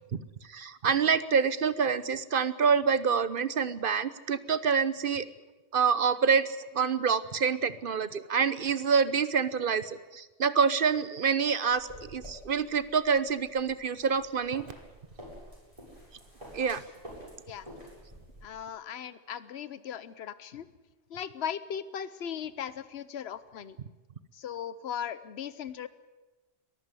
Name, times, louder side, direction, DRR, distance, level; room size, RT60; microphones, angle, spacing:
voice 1, 0.5-5.3 5.7-14.7 16.5-16.8, right 6 dB, 55° right, 15 dB, 1.0 m, -27 dB
sound 1, 11.7-18.4, equal, 30° right, 7.6 m, -49 dB
voice 2, 18.4-20.7 21.1-23.8 24.3-25.9, left 8 dB, 70° left, 14 dB, 1.1 m, -38 dB
22.5 x 14.5 x 9.7 m, 1.2 s
omnidirectional pair, 1.1 m